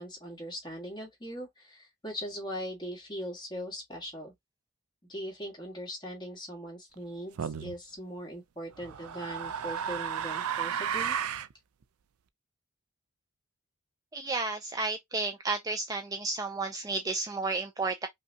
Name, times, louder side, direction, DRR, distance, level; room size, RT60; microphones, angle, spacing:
voice 1, 0.0-4.3 5.1-11.2, equal, 20° left, 1.6 m, -40 dB
sound 1, 7.4-7.8 8.8-11.5, right 8 dB, 80° right, 0.4 m, -33 dB
voice 2, 14.1-18.1, right 3 dB, 15° right, 0.4 m, -32 dB
5.3 x 2.3 x 2.7 m
head